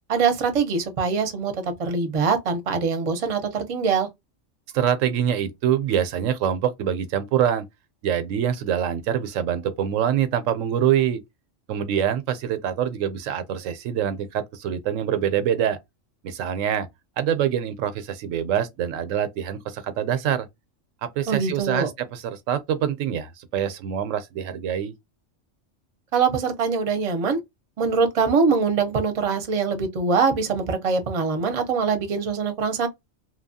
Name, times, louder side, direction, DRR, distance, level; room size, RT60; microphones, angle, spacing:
voice 1, 0.1-4.1 21.3-21.9 26.1-27.4 27.8-32.9, right 5 dB, 40° right, 0.6 m, -23 dB
voice 2, 4.7-7.6 8.0-11.2 11.7-15.8 16.2-16.9 17.2-20.5 21.0-24.9, right 9 dB, 85° right, 1.0 m, -25 dB
2.8 x 2.3 x 2.6 m
omnidirectional pair, 1.3 m